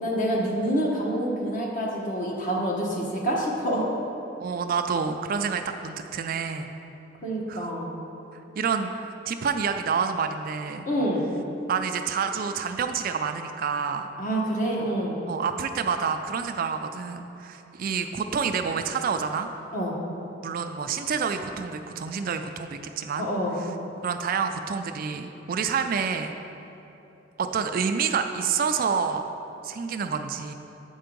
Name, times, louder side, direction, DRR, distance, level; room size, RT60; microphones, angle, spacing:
voice 1, 0.0-3.9 7.2-7.9 10.8-11.3 14.2-15.2 19.7-20.0 23.2-23.6, equal, 45° left, -2 dB, 1.1 m, -27 dB
voice 2, 4.4-6.7 7.5-7.7 8.6-10.9 11.7-14.1 15.3-19.5 20.4-23.3 24.0-26.3 27.4-29.2 29.6-30.5, right 6 dB, 50° right, 7 dB, 0.3 m, -28 dB
7.7 x 4.5 x 5.2 m, 3.0 s
head